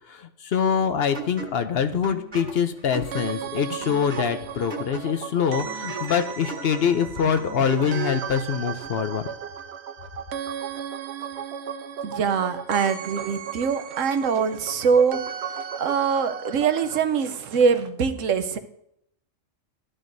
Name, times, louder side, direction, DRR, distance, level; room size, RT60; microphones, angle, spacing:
voice 1, 0.1-9.2, left 7 dB, 60° left, 9 dB, 0.8 m, -24 dB
sound 1, 1.1-8.3, right 2 dB, 35° right, 1.7 m, -37 dB
sound 2, 3.1-17.0, right 7 dB, 65° right, 0.8 m, -35 dB
voice 2, 12.0-18.6, right 6 dB, 80° right, 8 dB, 1.1 m, -23 dB
12.0 x 11.0 x 2.6 m, 0.75 s
omnidirectional pair, 1.3 m